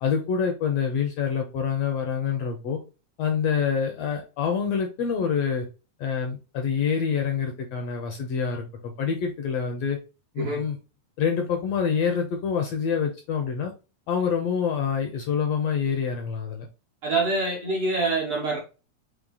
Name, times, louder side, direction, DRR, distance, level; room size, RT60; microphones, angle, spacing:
voice 1, 0.0-2.8 3.2-5.7 6.0-10.0 10.3-10.8 11.2-13.7 14.1-16.7, left 6 dB, 75° left, 3 dB, 1.5 m, -26 dB
voice 2, 17.0-18.6, right 3 dB, 75° right, -2 dB, 1.3 m, -25 dB
5.1 x 3.1 x 2.2 m, 0.32 s
omnidirectional pair, 3.5 m